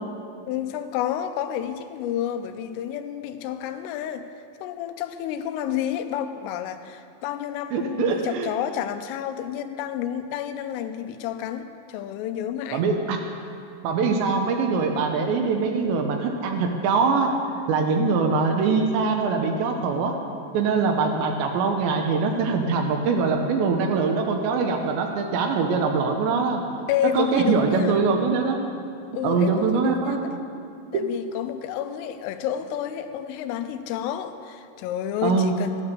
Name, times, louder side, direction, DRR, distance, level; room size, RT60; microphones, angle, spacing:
voice 1, 0.5-4.3 4.6-12.8 26.9-28.0 29.1-30.2 30.9-35.7, left 10 dB, 85° left, 9 dB, 3.3 m, -30 dB
voice 2, 7.7-8.5 12.7-13.2 13.8-17.3 17.7-20.2 20.5-26.6 27.1-28.6 29.2-30.2 35.2-35.5, right 4 dB, 75° right, 3 dB, 2.9 m, -23 dB
13.5 x 9.8 x 6.7 m, 2.4 s
omnidirectional pair, 5.7 m